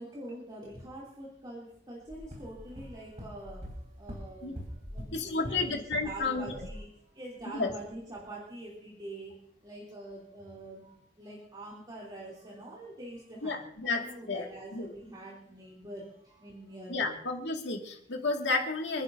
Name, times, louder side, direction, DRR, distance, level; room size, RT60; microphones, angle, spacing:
voice 1, 0.0-9.3 9.6-17.2, right 1 dB, 25° right, -5 dB, 3.1 m, -45 dB
sound 1, 2.1-6.2 6.5-6.8, equal, 40° right, 4.1 m, -43 dB
voice 2, 5.1-6.7 7.5-7.7 13.4-14.5 14.7-14.9 16.9-19.0, left 3 dB, 75° left, 2 dB, 2.2 m, -32 dB
28.0 x 10.5 x 2.7 m, 0.70 s
head